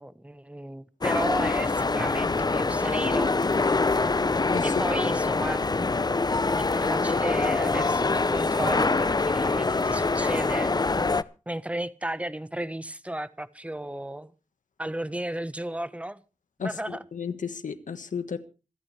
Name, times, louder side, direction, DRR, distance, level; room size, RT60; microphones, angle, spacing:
voice 1, 0.0-3.7 4.6-5.7 6.6-10.7 11.5-14.3 14.8-16.2 16.6-17.0, right 1 dB, 10° right, 1.1 m, -34 dB
sound 1, 1.0-11.2, left 3 dB, 30° left, 0.6 m, -24 dB
voice 2, 16.6-18.4, left 6 dB, 90° left, 1.5 m, -33 dB
26.5 x 9.6 x 3.3 m
wide cardioid pair, 70°, 13 cm